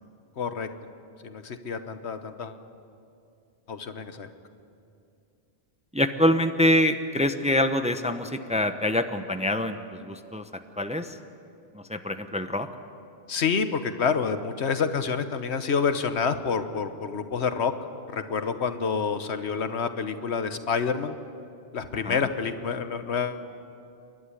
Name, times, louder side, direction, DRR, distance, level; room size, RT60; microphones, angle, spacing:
voice 1, 0.4-0.7 1.2-2.6 3.7-4.3 13.3-17.7 18.1-21.2 21.7-23.4, left 6 dB, 85° left, 9 dB, 1.4 m, -28 dB
voice 2, 5.9-10.5 10.8-11.2 11.7-12.7 21.9-22.2, left 1 dB, 5° right, 8 dB, 0.7 m, -25 dB
28.5 x 12.0 x 9.8 m, 2.5 s
omnidirectional pair, 1.1 m